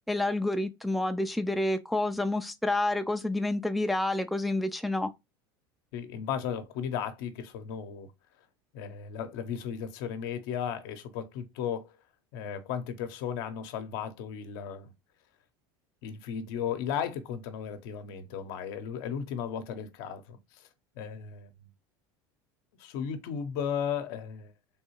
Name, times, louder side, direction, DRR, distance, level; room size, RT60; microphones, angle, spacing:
voice 1, 0.1-5.1, left 2 dB, ahead, 0.3 m, -29 dB
voice 2, 5.9-8.1 8.7-11.9 12.3-14.9 16.0-20.7 21.0-21.7 22.8-24.5, left 8 dB, 70° left, 0.7 m, -35 dB
3.4 x 2.7 x 3.0 m
supercardioid pair, 100°, 12 cm